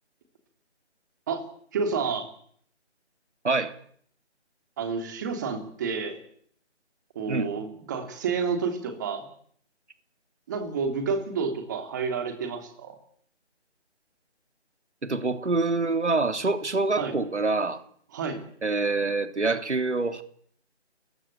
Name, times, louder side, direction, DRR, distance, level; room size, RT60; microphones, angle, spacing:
voice 1, 1.7-2.2 4.8-6.2 7.1-9.2 10.5-13.0 17.0-17.1 18.1-18.4, right 5 dB, 15° right, 3.3 m, -29 dB
voice 2, 3.4-3.8 7.3-7.5 15.0-17.8 18.6-20.2, right 3 dB, 80° right, 3.6 m, -26 dB
29.5 x 16.0 x 8.5 m
figure-of-eight pair, 170°, 34 cm